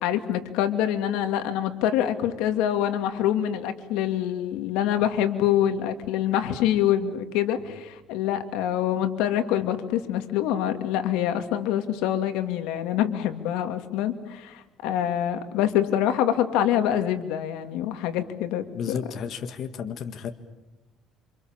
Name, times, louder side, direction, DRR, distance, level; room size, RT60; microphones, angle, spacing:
voice 1, 0.0-19.0, left 11 dB, 90° left, 8 dB, 2.6 m, -25 dB
voice 2, 18.7-20.3, left 7 dB, 50° left, 7 dB, 1.8 m, -32 dB
28.0 x 27.5 x 7.4 m, 0.98 s
cardioid pair, 135°, 0 cm